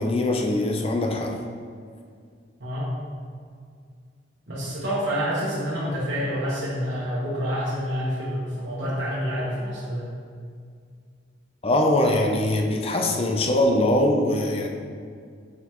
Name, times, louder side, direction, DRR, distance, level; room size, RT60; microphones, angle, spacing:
voice 1, 0.0-1.4 11.6-14.7, left 1 dB, 30° left, 2 dB, 0.5 m, -22 dB
voice 2, 2.6-3.0 4.5-10.1, equal, 70° right, -8 dB, 1.2 m, -28 dB
5.9 x 5.5 x 3.0 m, 2.2 s
head